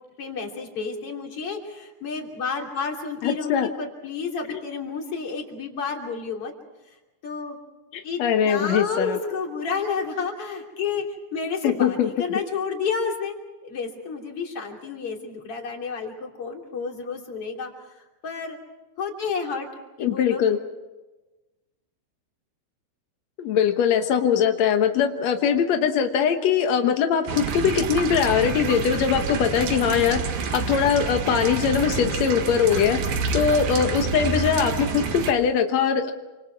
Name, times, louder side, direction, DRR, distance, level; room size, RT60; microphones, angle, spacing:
voice 1, 0.2-6.5 7.2-7.6 8.0-11.0 11.3-17.7 18.2-18.6 19.0-19.7 20.0-20.4 32.7-32.9, left 5 dB, 35° left, 1 dB, 3.6 m, -30 dB
voice 2, 3.2-3.7 4.5-4.6 7.9-9.2 11.6-12.1 20.0-20.6 23.4-30.2 30.5-33.0 33.3-36.1, left 7 dB, 80° left, 5 dB, 1.5 m, -21 dB
sound 1, 27.3-35.3, right 5 dB, 60° right, 3.4 m, -28 dB
28.5 x 26.5 x 4.7 m, 1.1 s
omnidirectional pair, 5.0 m